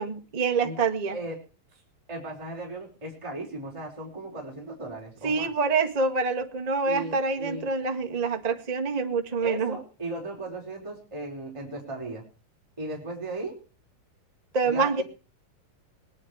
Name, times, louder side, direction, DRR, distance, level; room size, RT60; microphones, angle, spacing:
voice 1, 0.0-1.2 5.2-9.8 14.5-15.0, right 4 dB, 60° right, 4 dB, 0.4 m, -26 dB
voice 2, 2.1-5.5 6.9-7.7 9.4-12.2 12.8-13.6 14.6-15.0, right 2 dB, 10° right, -1 dB, 4.8 m, -36 dB
19.5 x 12.0 x 4.8 m, 0.34 s
omnidirectional pair, 4.0 m